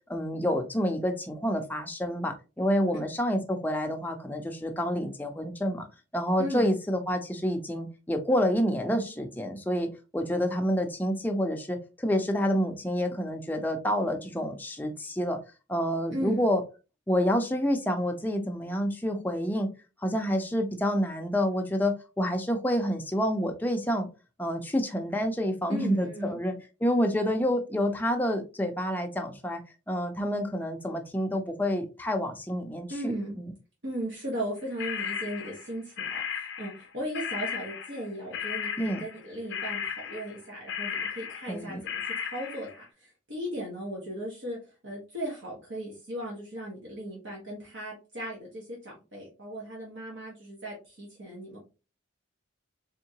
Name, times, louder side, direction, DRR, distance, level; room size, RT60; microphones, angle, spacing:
voice 1, 0.1-5.9 6.1-15.4 15.7-16.6 17.1-19.7 20.0-24.1 24.4-26.5 26.8-29.6 29.9-33.5 38.8-39.0 41.5-41.8, equal, 10° left, 4 dB, 0.5 m, -28 dB
voice 2, 16.1-16.4 25.7-26.4 32.9-33.4 33.8-51.6, right 1 dB, 70° right, -4 dB, 1.3 m, -37 dB
sound 1, 34.8-36.9 37.1-42.8, left 7 dB, 65° left, 0.6 m, -35 dB
3.6 x 3.6 x 2.8 m, 0.31 s
head